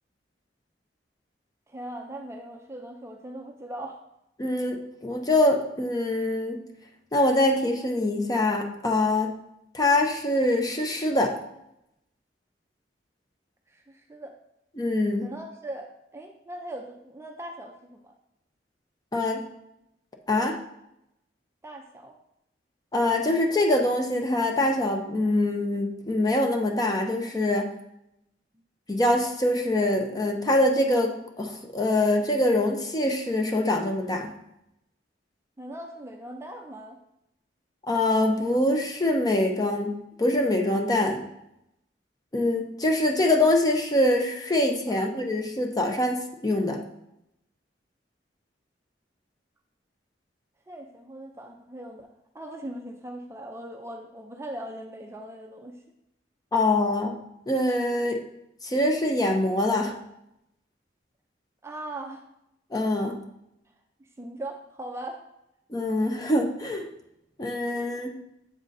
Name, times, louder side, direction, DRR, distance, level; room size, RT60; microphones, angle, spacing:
voice 1, 1.7-4.0 13.7-14.4 15.2-18.1 21.6-22.2 35.6-37.0 44.9-45.1 50.7-52.1 52.3-55.8 61.6-62.2 64.2-65.2, right 1 dB, 15° right, 2 dB, 0.5 m, -39 dB
voice 2, 4.4-6.6 7.1-9.3 9.7-11.3 14.8-15.3 19.1-19.4 20.3-20.6 22.9-27.7 28.9-34.3 37.9-41.2 42.3-46.8 56.5-57.2 57.5-58.2 58.6-59.9 62.7-63.2 65.7-66.8 67.4-68.1, left 1 dB, 20° left, 3 dB, 0.7 m, -24 dB
7.4 x 3.9 x 4.0 m, 0.83 s
head